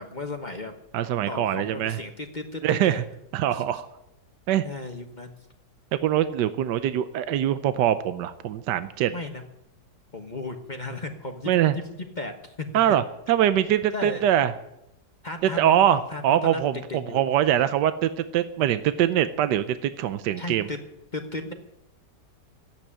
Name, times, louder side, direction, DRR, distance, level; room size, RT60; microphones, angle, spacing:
voice 1, 0.0-0.8 1.3-3.0 3.5-3.6 4.6-5.3 9.1-9.4 10.1-11.8 12.2-12.7 13.9-14.2 15.2-17.2 20.4-20.8 21.1-21.5, left 2 dB, 30° left, 4 dB, 1.1 m, -35 dB
voice 2, 0.9-2.0 2.6-3.0 3.3-3.9 4.5-4.6 6.0-9.1 11.5-11.7 12.7-14.5 15.4-20.7, right 11 dB, 80° right, 12 dB, 1.3 m, -23 dB
13.5 x 8.9 x 9.8 m, 0.87 s
omnidirectional pair, 1.9 m